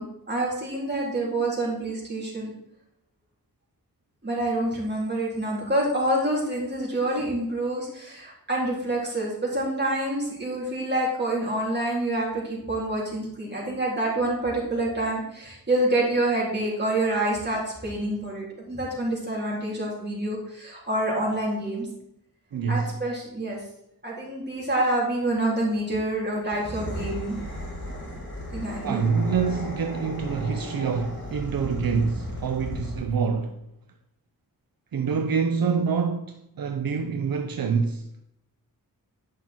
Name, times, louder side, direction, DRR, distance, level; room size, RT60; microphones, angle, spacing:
voice 1, 0.0-2.5 4.2-21.9 22.7-23.6 24.0-27.4 28.5-29.0, right 1 dB, 30° right, 3.6 m, -27 dB
voice 2, 22.5-22.9 28.8-33.6 34.9-38.3, right 5 dB, 75° right, 0.7 m, -26 dB
sound 1, 26.4-33.2, equal, 35° left, 3.4 m, -36 dB
9.7 x 5.9 x 4.5 m
wide cardioid pair, 100°, 35 cm